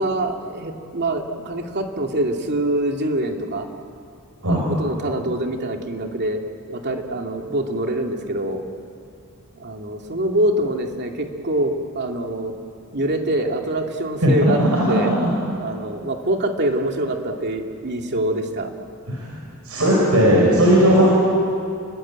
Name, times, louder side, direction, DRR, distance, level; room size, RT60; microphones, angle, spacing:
voice 1, 0.0-3.7 4.5-6.4 6.7-8.6 9.5-12.5 12.9-14.6 14.9-15.1 15.6-18.7, right 1 dB, 50° right, 2 dB, 2.5 m, -24 dB
voice 2, 14.2-15.3 19.1-19.3 19.6-21.1, equal, 75° right, -3 dB, 6.0 m, -17 dB
30.0 x 22.0 x 8.8 m, 2.4 s
head